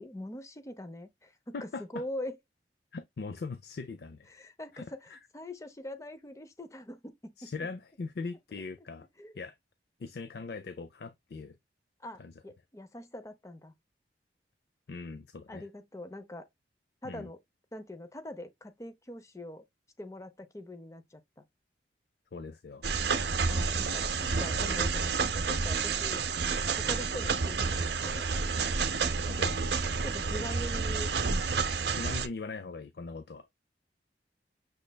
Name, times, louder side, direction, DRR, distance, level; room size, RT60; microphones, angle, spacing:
voice 1, 0.0-2.4 4.3-7.5 9.2-9.4 12.0-13.7 15.5-16.5 17.0-17.4 17.7-19.6 20.0-21.5 23.5-26.2 26.8-28.3 30.0-31.1, left 1 dB, 20° left, 0.6 m, -43 dB
voice 2, 1.5-2.0 2.9-4.3 4.7-5.2 7.4-9.1 9.3-9.5 10.0-11.6 12.2-12.3 14.9-15.7 17.0-17.3 22.3-22.9 29.3-29.6 31.9-33.5, left 4 dB, 60° left, 0.4 m, -40 dB
sound 1, 22.8-32.3, right 5 dB, 65° right, 0.6 m, -30 dB
6.3 x 3.2 x 2.2 m
head